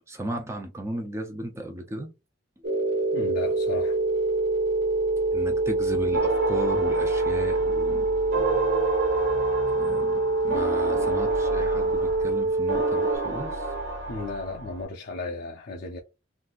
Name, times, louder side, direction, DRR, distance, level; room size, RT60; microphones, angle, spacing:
voice 1, 0.1-2.1 5.3-8.1 9.7-13.7, right 1 dB, 15° right, 0.5 m, -35 dB
sound 1, 2.6-13.2, right 2 dB, 60° right, 0.9 m, -25 dB
voice 2, 3.1-4.0 14.1-16.0, left 3 dB, 55° left, 0.5 m, -34 dB
sound 2, 6.1-14.9, right 3 dB, 90° right, 1.4 m, -31 dB
3.7 x 2.6 x 2.4 m
head